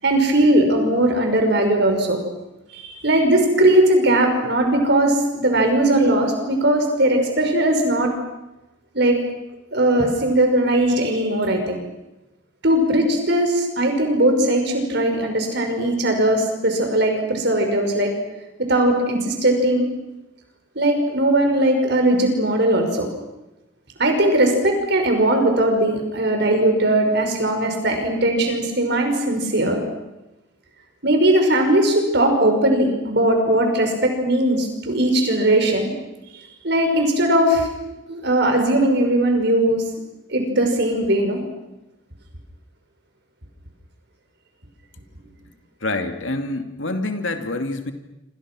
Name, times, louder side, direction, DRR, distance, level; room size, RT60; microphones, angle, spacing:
voice 1, 0.0-2.2 2.7-8.1 8.9-9.2 9.7-11.8 12.6-18.1 18.6-19.9 20.8-23.1 24.0-29.8 31.0-35.9 36.6-37.7 38.1-39.8 40.3-41.4, right 1 dB, 60° right, 4 dB, 6.0 m, -19 dB
voice 2, 45.8-47.9, left 2 dB, 75° left, 6 dB, 2.6 m, -26 dB
28.0 x 26.5 x 6.3 m, 0.99 s
head